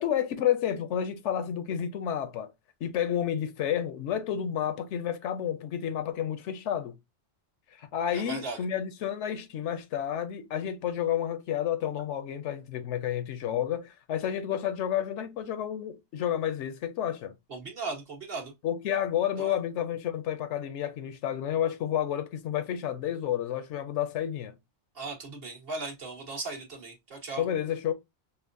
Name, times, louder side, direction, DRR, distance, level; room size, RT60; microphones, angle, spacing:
voice 1, 0.0-2.5 2.8-6.9 7.8-17.3 18.6-24.6 27.4-27.9, left 10 dB, 75° left, 0.9 m, -30 dB
voice 2, 8.1-8.6 17.5-18.5 19.4-19.5 24.9-27.4, right 3 dB, 55° right, 1.4 m, -37 dB
5.4 x 2.1 x 2.5 m
omnidirectional pair, 1.2 m